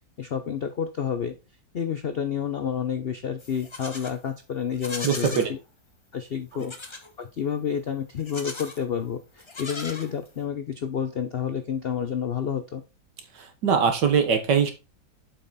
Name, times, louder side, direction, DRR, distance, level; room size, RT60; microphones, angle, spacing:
voice 1, 0.2-1.3 1.7-5.6 6.1-12.8, left 8 dB, 75° left, 9 dB, 0.5 m, -30 dB
Livestock farm animals working animals, 3.4-4.2 4.7-5.5 6.6-7.1 8.2-8.8 9.4-10.4, left 3 dB, 20° left, 0.7 m, -38 dB
voice 2, 5.0-5.5 13.3-14.7, right 6 dB, 70° right, 7 dB, 1.8 m, -22 dB
7.6 x 5.5 x 4.1 m, 0.29 s
omnidirectional pair, 1.9 m